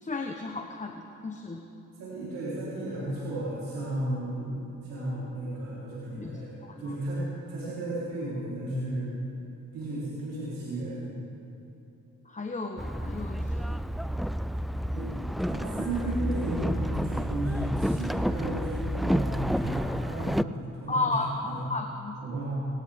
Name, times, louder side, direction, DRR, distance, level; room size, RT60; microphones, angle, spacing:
voice 1, 0.0-1.6 6.1-6.9 12.3-13.8 20.9-22.1, left 3 dB, 20° left, 3 dB, 1.1 m, -34 dB
voice 2, 2.0-9.1 9.7-11.1 14.9-21.6 22.2-22.5, right 1 dB, 90° right, -9 dB, 4.0 m, -34 dB
Boat Water vehicle, 12.8-20.4, equal, ahead, 0.3 m, -30 dB
20.0 x 18.5 x 3.7 m, 3.0 s
supercardioid pair, 65°, 33 cm